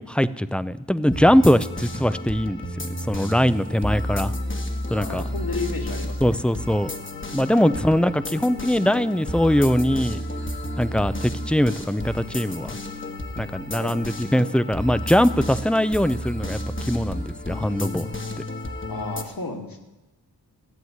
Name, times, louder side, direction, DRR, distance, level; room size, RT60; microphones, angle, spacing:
voice 1, 0.0-2.6 3.1-4.3 4.9-5.2 6.2-6.9 7.3-10.2 10.8-12.8 13.4-18.1, equal, 5° left, 15 dB, 0.5 m, -21 dB
sound 1, 1.1-19.2, left 1 dB, 30° left, 1.3 m, -32 dB
voice 2, 4.9-6.4 7.7-7.8 13.8-14.0 18.9-19.8, left 3 dB, 60° left, 2 dB, 2.4 m, -32 dB
15.0 x 8.0 x 9.4 m, 1.0 s
wide cardioid pair, 100°, 40 cm